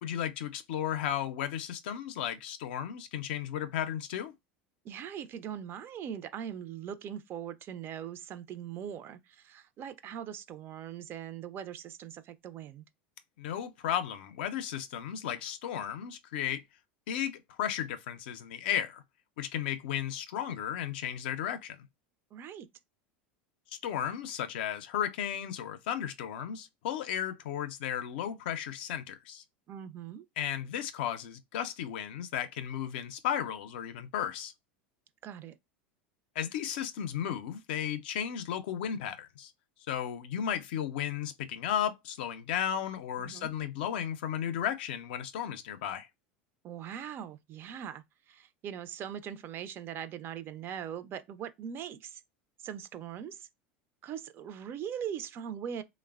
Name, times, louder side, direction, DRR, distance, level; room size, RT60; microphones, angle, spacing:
voice 1, 0.0-4.3 13.4-16.6 17.1-19.0 19.4-21.9 23.8-29.4 30.4-34.5 36.4-39.5 39.9-46.1, left 9 dB, 75° left, 0.4 m, -34 dB
voice 2, 4.8-12.8 22.3-22.7 29.7-30.2 35.2-35.6 43.2-43.5 46.6-52.2 52.6-53.5 54.0-55.8, right 9 dB, 40° right, 0.4 m, -41 dB
3.1 x 2.0 x 2.3 m
hypercardioid pair, 90°, 6 cm